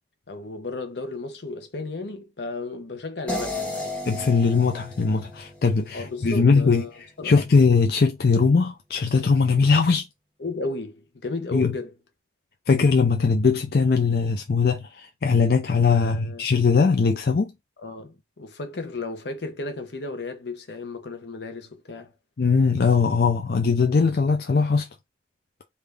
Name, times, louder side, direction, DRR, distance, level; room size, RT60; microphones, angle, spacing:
voice 1, 0.3-4.0 5.9-6.9 7.2-7.3 10.4-11.9 15.9-16.4 17.8-22.1, left 3 dB, 80° left, 0.9 m, -34 dB
sound 1, 3.3-6.4, left 1 dB, 5° left, 1.2 m, -34 dB
voice 2, 4.0-6.8 7.2-10.1 11.5-11.7 12.7-17.5 22.4-24.9, left 4 dB, 60° left, 0.4 m, -20 dB
3.4 x 2.7 x 3.4 m
head